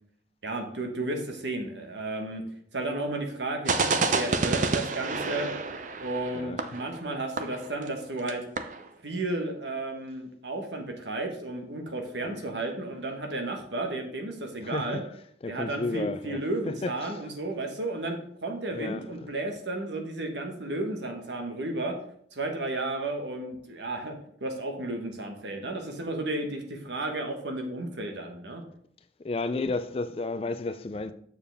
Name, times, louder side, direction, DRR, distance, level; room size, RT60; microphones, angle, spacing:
voice 1, 0.4-2.4 2.7-5.5 6.0-8.4 9.0-15.0 15.5-21.9 22.3-24.1 24.4-28.6, right 2 dB, 75° right, 1.4 m, -33 dB
sound 1, 3.7-8.0 8.3-8.4 8.6-8.8, right 3 dB, 45° right, 0.5 m, -29 dB
voice 2, 14.6-15.0 15.4-16.4 16.7-17.2 18.7-19.3 29.2-31.1, left 3 dB, 30° left, 0.4 m, -32 dB
7.0 x 6.8 x 3.5 m
head